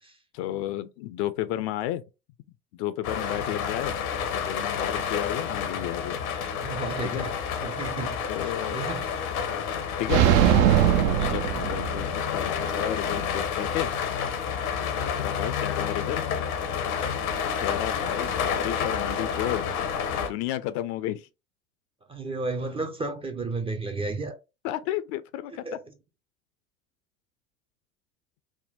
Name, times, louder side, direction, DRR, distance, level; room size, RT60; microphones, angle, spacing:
voice 1, 0.3-2.0 2.7-4.0 4.3-6.2 7.0-7.3 8.3-8.8 10.0-10.3 11.0-13.9 14.8-16.5 17.6-19.7 20.2-21.3 24.6-25.6, left 13 dB, 50° left, 0.5 m, -32 dB
sound 1, 3.0-20.3, left 7 dB, 75° left, 0.9 m, -29 dB
voice 2, 6.6-7.3 7.6-9.2 11.2-11.4 14.8-15.0 22.1-24.4 25.5-25.8, right 3 dB, 15° right, 0.5 m, -33 dB
sound 2, 10.1-12.3, right 11 dB, 65° right, 0.6 m, -21 dB
3.6 x 2.2 x 4.0 m
hypercardioid pair, 85°, 43 cm